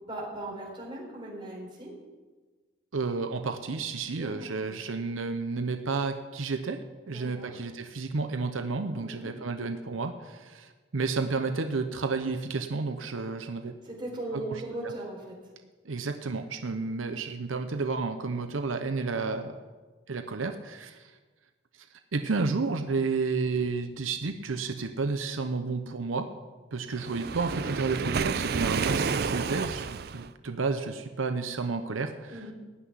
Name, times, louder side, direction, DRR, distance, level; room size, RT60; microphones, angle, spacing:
voice 1, 0.1-1.9 4.2-4.3 4.7-4.8 7.0-7.5 9.0-9.3 13.8-15.3 32.3-32.5, right 2 dB, 25° right, -2 dB, 3.9 m, -38 dB
voice 2, 2.9-13.7 14.3-14.6 15.8-19.5 20.1-21.1 22.1-26.3 26.7-32.3, right 4 dB, 85° right, 7 dB, 0.8 m, -31 dB
Waves surf, 27.0-30.3, right 5 dB, 50° right, 0.4 m, -30 dB
15.5 x 6.0 x 9.8 m, 1.3 s
head